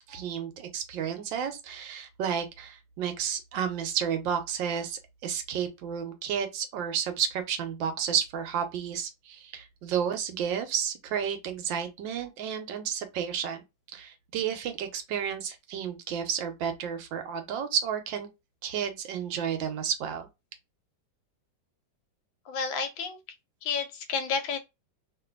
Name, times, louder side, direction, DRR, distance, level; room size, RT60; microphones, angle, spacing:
voice 1, 0.1-13.6 13.9-18.3 18.6-20.3, right 8 dB, 75° right, 1.5 m, -31 dB
voice 2, 22.5-23.2 23.6-24.6, left 5 dB, 90° left, 1.5 m, -30 dB
3.2 x 2.6 x 2.4 m
omnidirectional pair, 2.1 m